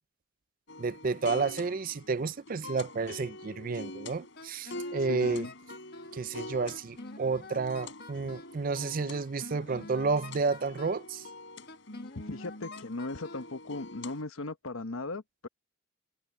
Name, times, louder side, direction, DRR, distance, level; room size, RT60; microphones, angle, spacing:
sound 1, 0.7-14.2, left 2 dB, 65° left, 3.8 m, -45 dB
voice 1, 0.8-5.5 6.1-11.3, right 4 dB, 45° right, 0.5 m, -31 dB
Wind instrument woodwind instrument, 4.3-6.2 6.7-8.6 9.1-11.1 11.7-13.5, left 2 dB, 50° left, 1.3 m, -48 dB
voice 2, 5.0-5.5 12.1-15.5, left 2 dB, 90° left, 1.1 m, -38 dB
head